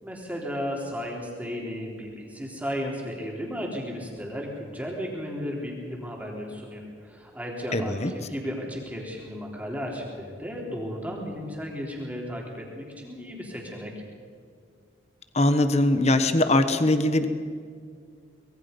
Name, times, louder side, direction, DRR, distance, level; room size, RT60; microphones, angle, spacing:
voice 1, 0.0-13.9, equal, 10° right, -2 dB, 3.6 m, -34 dB
voice 2, 7.7-8.1 15.3-17.3, left 1 dB, 35° left, 9 dB, 1.2 m, -21 dB
24.5 x 21.0 x 5.4 m, 2.1 s
head